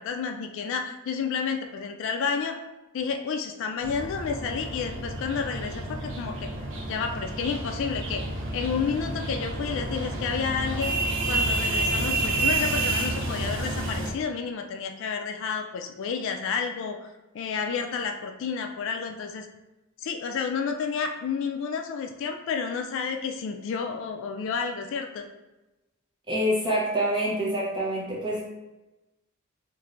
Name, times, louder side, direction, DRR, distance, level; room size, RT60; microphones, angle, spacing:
voice 1, 0.0-2.6 2.9-6.5 6.9-8.2 8.5-10.9 11.3-17.1 17.3-19.5 20.0-25.3, left 6 dB, 65° left, 4 dB, 0.3 m, -30 dB
sound 1, 3.8-14.1, right 2 dB, 60° right, 0.5 m, -29 dB
voice 2, 26.3-28.4, equal, 20° right, -5 dB, 0.9 m, -26 dB
3.1 x 2.6 x 2.5 m, 1.0 s
head